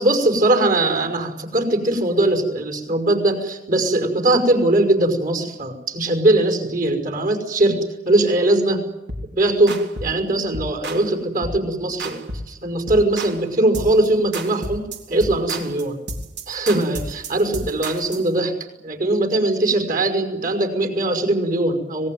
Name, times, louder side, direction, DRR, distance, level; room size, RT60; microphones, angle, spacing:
voice 1, 0.0-8.9 9.3-12.2 12.5-16.0 16.5-18.5 18.8-22.1, right 2 dB, 50° right, 6 dB, 5.6 m, -20 dB
sound 1, 9.1-9.3 9.7-10.2 10.5-11.1 11.4-11.7 12.0-12.5 12.9-13.4 13.7-14.1 14.3-18.3, right 1 dB, 80° right, 3.7 m, -32 dB
25.5 x 20.0 x 9.5 m, 1.0 s
head